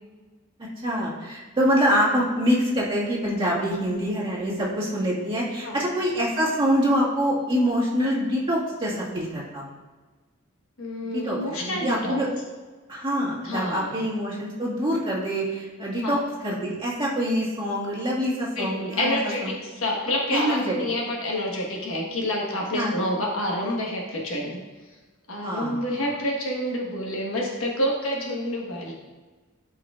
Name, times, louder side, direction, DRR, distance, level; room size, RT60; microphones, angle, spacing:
voice 1, 0.6-9.7 11.0-12.3 12.9-19.6 20.3-20.8 22.7-22.9 25.4-26.0, equal, 25° right, -6 dB, 1.8 m, -25 dB
voice 2, 10.8-12.2 13.4-13.9 16.0-16.2 18.6-24.6 25.3-28.9, left 1 dB, 70° left, -1 dB, 1.4 m, -28 dB
11.5 x 4.7 x 2.4 m, 1.3 s
head